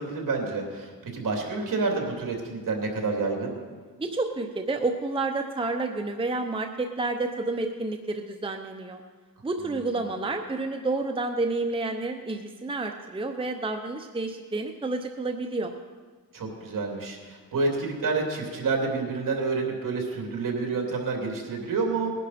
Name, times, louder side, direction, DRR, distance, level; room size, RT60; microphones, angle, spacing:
voice 1, 0.0-3.5 9.9-10.0 16.3-22.1, right 3 dB, 60° right, 1 dB, 2.9 m, -29 dB
voice 2, 4.0-9.0 9.4-15.7, right 3 dB, 15° right, 4 dB, 0.8 m, -30 dB
19.5 x 11.0 x 4.3 m, 1.5 s
cardioid pair, 110°, 36 cm